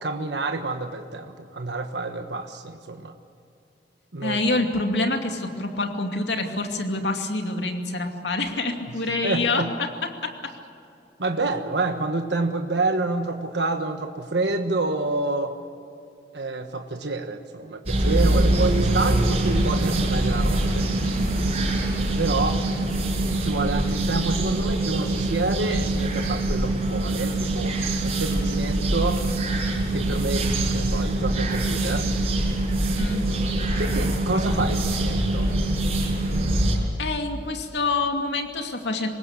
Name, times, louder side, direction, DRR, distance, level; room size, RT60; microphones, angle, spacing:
voice 1, 0.0-3.1 4.1-4.4 9.2-9.7 11.2-15.5 16.3-20.9 22.2-22.6 23.4-29.2 29.9-32.1 33.8-35.5, right 3 dB, 80° right, 5 dB, 1.4 m, -28 dB
voice 2, 4.2-9.9 10.2-10.3 18.0-18.1 33.0-33.2 37.0-39.1, left 2 dB, 85° left, 4 dB, 2.5 m, -26 dB
sound 1, 17.9-36.8, right 1 dB, 35° right, 5.8 m, -24 dB
25.0 x 20.5 x 7.3 m, 2.6 s
head